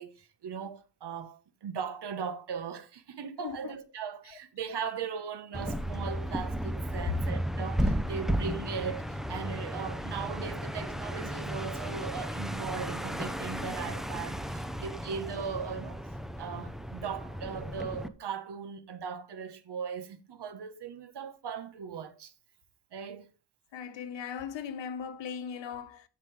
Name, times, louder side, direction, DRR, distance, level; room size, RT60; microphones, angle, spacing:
voice 1, 0.0-16.0 16.4-22.3 22.9-23.3, right 6 dB, 65° right, 1.2 m, -38 dB
voice 2, 3.4-3.8 23.7-26.0, left 7 dB, 85° left, 1.1 m, -38 dB
sound 1, 5.5-18.1, equal, ahead, 0.6 m, -34 dB
14.0 x 5.4 x 3.3 m
wide cardioid pair, 120°, 43 cm